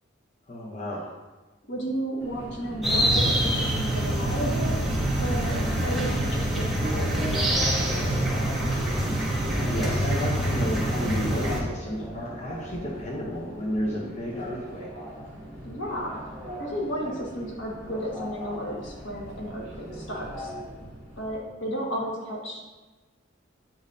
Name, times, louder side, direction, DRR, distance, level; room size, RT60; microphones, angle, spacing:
voice 1, 0.5-1.2 9.6-14.9, equal, 35° left, -3 dB, 0.8 m, -32 dB
voice 2, 1.7-4.8 5.2-7.9 15.6-16.2 16.6-20.5 21.2-22.6, equal, 75° left, -2 dB, 1.6 m, -33 dB
Subway metro underground, 2.2-21.4, equal, 20° left, 2.2 m, -38 dB
sound 1, 2.8-11.6, right 1 dB, ahead, 1.0 m, -25 dB
8.8 x 5.2 x 2.7 m, 1.2 s
head